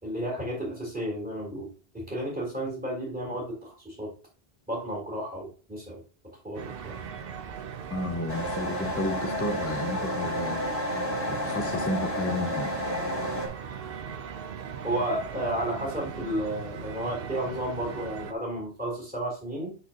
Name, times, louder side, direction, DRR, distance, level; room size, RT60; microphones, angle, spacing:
voice 1, 0.0-4.1 4.7-6.0 6.4-7.0 14.8-19.8, right 1 dB, 10° right, 3.6 m, -32 dB
sound 1, 6.5-18.3, right 7 dB, 65° right, 0.9 m, -39 dB
voice 2, 7.9-10.7 11.3-12.8, left 1 dB, 15° left, 0.6 m, -32 dB
sound 2, 8.3-13.5, left 1 dB, 75° left, 2.7 m, -31 dB
7.4 x 6.5 x 2.9 m
omnidirectional pair, 1.1 m